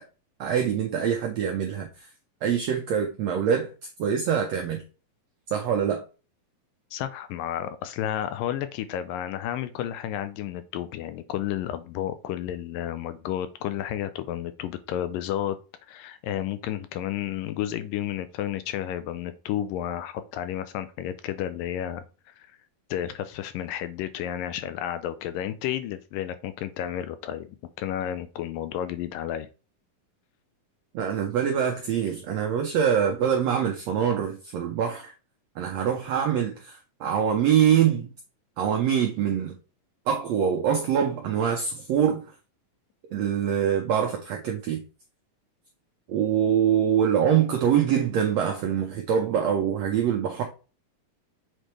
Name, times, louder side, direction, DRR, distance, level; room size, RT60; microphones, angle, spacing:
voice 1, 0.4-2.1 2.4-3.7 4.0-4.8 5.5-6.0 30.9-35.1 35.6-38.1 38.6-39.5 40.1-42.2 43.1-44.8 46.1-50.4, right 8 dB, 85° right, 1.5 m, -24 dB
voice 2, 6.9-15.6 15.9-22.0 22.4-22.5 22.9-29.5, left 11 dB, 85° left, 2.3 m, -31 dB
7.7 x 4.3 x 3.3 m
omnidirectional pair, 4.0 m